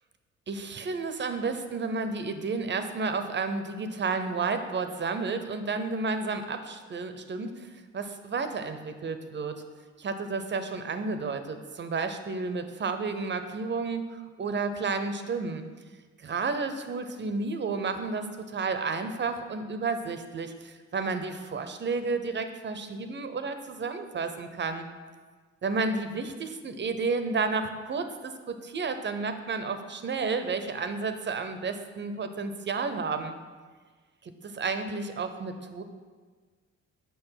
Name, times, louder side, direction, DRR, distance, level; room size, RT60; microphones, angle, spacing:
voice 1, 0.5-9.6 10.0-15.6 16.2-24.9 25.6-33.4 34.2-35.8, right 4 dB, 35° right, 9 dB, 0.7 m, -31 dB
6.9 x 5.2 x 5.7 m, 1.5 s
cardioid pair, 90°, 30 cm